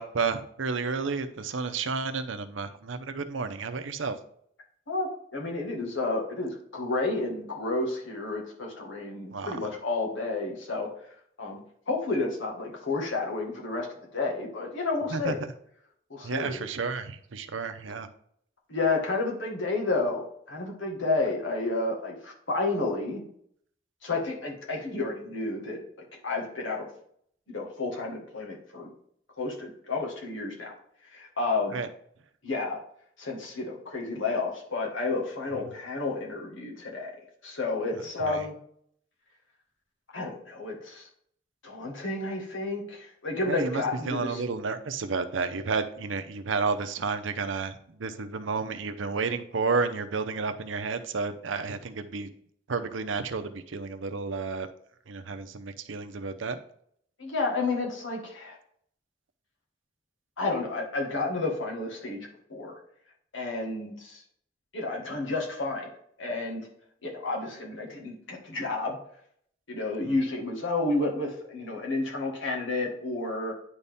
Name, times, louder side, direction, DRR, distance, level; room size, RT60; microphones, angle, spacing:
voice 1, 0.0-4.2 9.3-9.6 15.1-15.5 16.2-18.1 31.7-31.9 38.3-38.4 43.5-47.7 48.0-52.3 52.7-54.7 55.1-56.6 70.0-70.1, right 4 dB, 80° right, 9 dB, 0.7 m, -31 dB
voice 2, 4.9-11.1 11.4-11.6 11.9-13.9 14.1-15.4 16.1-16.6 18.7-23.2 24.0-25.8 26.2-26.9 27.5-28.9 29.4-30.7 31.1-31.8 32.4-32.8 33.2-37.2 37.4-38.6 40.1-41.1 41.6-44.4 57.2-58.6 60.4-62.8 63.3-64.2 64.7-65.9 66.2-66.7 67.0-69.0 69.7-73.5, left 3 dB, 85° left, 0 dB, 1.9 m, -31 dB
9.7 x 4.2 x 3.5 m, 0.66 s
head